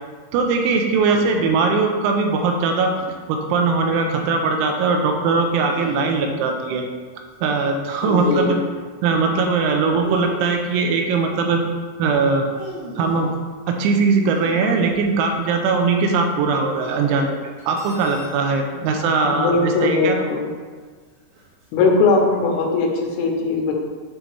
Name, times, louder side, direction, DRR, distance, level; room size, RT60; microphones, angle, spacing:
voice 1, 0.3-2.9 3.3-6.8 7.4-8.6 9.0-11.6 12.0-12.5 13.0-13.3 13.7-20.2, right 4 dB, 85° right, 3 dB, 3.0 m, -20 dB
sound 1, 5.7-6.2 8.0-8.7 10.0-10.8 12.3-13.4 14.2-15.4 16.7-17.3 18.0-18.3 19.6-20.1 21.3-21.7, right 1 dB, 65° right, 3.1 m, -36 dB
voice 2, 8.0-8.6 18.7-18.8 19.2-20.5 21.7-23.7, left 3 dB, 80° left, 0 dB, 3.3 m, -20 dB
Cutlery silverware, 17.6-18.4, left 1 dB, 50° right, 1.4 m, -43 dB
9.9 x 3.9 x 3.1 m, 1.5 s
omnidirectional pair, 5.5 m